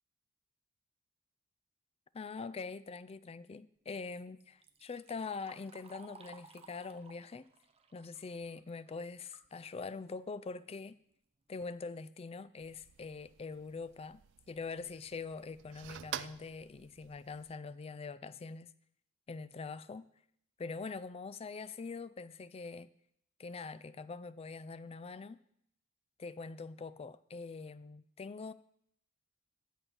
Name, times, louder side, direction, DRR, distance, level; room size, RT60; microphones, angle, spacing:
voice 1, 2.1-7.5 7.9-11.0 11.5-14.2 14.5-18.7 19.3-20.0 20.6-22.9 23.4-25.4 26.2-28.5, left 4 dB, 30° left, 0.4 m, -44 dB
Liquid, 4.4-9.5 9.9-10.0 10.9-11.0 11.4-11.8 12.4-12.5 13.0-13.1 13.5-13.7, right 4 dB, 30° right, 0.8 m, -58 dB
sound 1, 12.6-17.5, right 11 dB, 60° right, 0.4 m, -49 dB
13.0 x 4.5 x 8.0 m
head